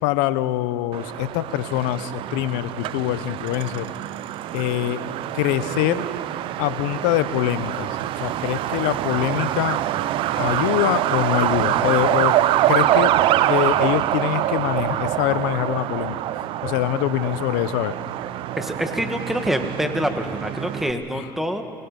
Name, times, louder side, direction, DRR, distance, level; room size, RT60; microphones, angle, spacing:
voice 1, 0.0-3.9 4.5-5.0 5.3-6.1 6.6-9.8 10.4-12.4 12.7-13.1 13.5-16.2 16.6-18.0 21.1-21.3, left 15 dB, 80° left, 15 dB, 0.8 m, -24 dB
Truck, 0.9-20.9, right 13 dB, 60° right, 0.6 m, -25 dB
voice 2, 18.6-21.6, equal, 5° right, 6 dB, 2.0 m, -26 dB
24.5 x 20.0 x 5.3 m, 2.3 s
supercardioid pair, 90°, 10 cm